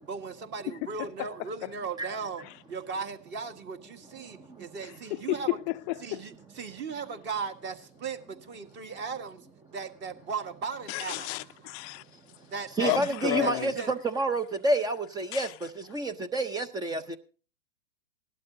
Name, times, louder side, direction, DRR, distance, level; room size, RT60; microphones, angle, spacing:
voice 1, 0.1-5.6 6.0-9.5 9.7-11.7 12.5-13.9, right 5 dB, 25° right, 1.6 m, -37 dB
voice 2, 4.3-4.7 12.8-17.2, right 2 dB, 10° right, 0.6 m, -29 dB
voice 3, 10.9-12.0 12.8-13.7 15.3-15.5, left 20 dB, 30° left, 0.5 m, -31 dB
18.0 x 12.0 x 2.7 m
hypercardioid pair, 120°, 39 cm